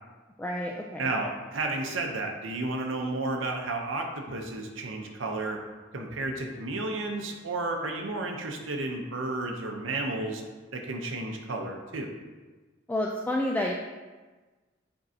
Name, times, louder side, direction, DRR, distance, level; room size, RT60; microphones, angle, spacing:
voice 1, 0.4-1.1 12.9-13.7, left 1 dB, 10° left, -1 dB, 0.3 m, -29 dB
voice 2, 1.0-5.6 5.9-10.4 10.7-12.1, right 2 dB, 85° right, 2 dB, 0.7 m, -32 dB
7.6 x 4.5 x 2.8 m, 1.3 s
head